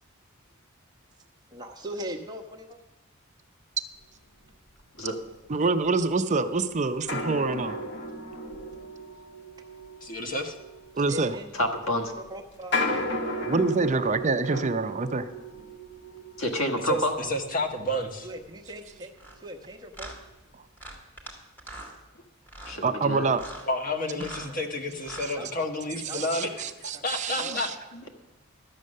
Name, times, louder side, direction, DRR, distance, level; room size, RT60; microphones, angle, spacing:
voice 1, 1.5-2.8 11.1-11.5 12.1-13.5 13.8-14.1 17.2-17.3 17.6-20.1 24.5-24.6 25.3-25.5 26.1-26.6 26.9-27.0 27.4-27.6, equal, 20° right, 2 dB, 1.1 m, -40 dB
voice 2, 5.5-7.8 11.0-11.4 13.5-15.3 22.8-23.4 25.2-25.3 26.1-27.7, right 3 dB, 35° right, 9 dB, 0.6 m, -26 dB
sound 1, 5.8-5.9 7.1-19.0 19.4-19.5 20.0-20.2, left 1 dB, 60° left, 1.1 m, -35 dB
voice 3, 10.0-10.6 16.8-18.3 23.7-26.5 26.8-27.7, left 1 dB, 40° left, 4 dB, 1.4 m, -30 dB
voice 4, 11.5-12.1 16.4-17.1 22.7-23.3 27.5-27.6 27.9-28.1, left 1 dB, 80° left, 4 dB, 1.7 m, -28 dB
sound 2, 19.2-19.4 19.9-20.2 20.8-21.3 21.6-21.9 22.5-22.8 23.3-23.7 24.1-24.5 25.0-25.3, right 1 dB, 10° left, 1.9 m, -42 dB
12.5 x 8.4 x 6.5 m, 1.1 s
head